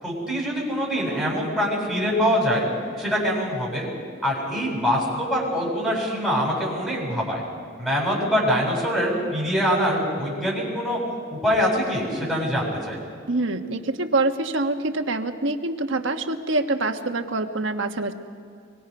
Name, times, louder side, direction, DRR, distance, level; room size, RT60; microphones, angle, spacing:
voice 1, 0.0-2.7 3.0-3.9 4.2-7.4 7.8-11.0 11.3-13.0, equal, ahead, -5 dB, 7.5 m, -24 dB
voice 2, 13.3-18.1, right 2 dB, 65° right, 6 dB, 1.3 m, -25 dB
25.5 x 23.0 x 5.5 m, 2.2 s
head